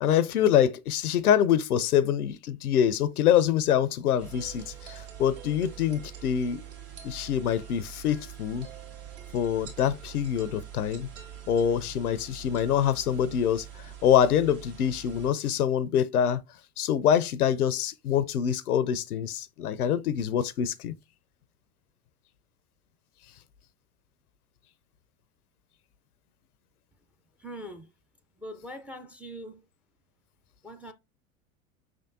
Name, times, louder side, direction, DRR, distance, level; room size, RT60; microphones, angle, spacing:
voice 1, 0.0-6.6 7.0-8.7 9.3-11.1 11.5-13.7 14.0-16.4 16.8-20.9, left 9 dB, 80° left, 0.5 m, -25 dB
sound 1, 4.2-15.3, right 9 dB, 60° right, 1.8 m, -44 dB
voice 2, 27.4-27.9 28.4-29.6 30.6-30.9, equal, 5° right, 0.4 m, -42 dB
5.2 x 3.5 x 2.6 m
figure-of-eight pair, 80°, 44 cm